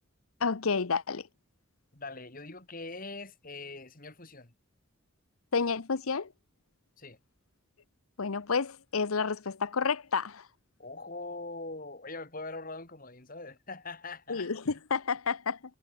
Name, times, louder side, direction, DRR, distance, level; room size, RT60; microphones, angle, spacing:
voice 1, 0.4-1.3 5.5-6.3 8.2-10.4 14.3-15.6, left 5 dB, 85° left, 0.9 m, -30 dB
voice 2, 1.9-4.5 7.0-7.2 10.8-14.5, left 3 dB, 40° left, 3.6 m, -42 dB
head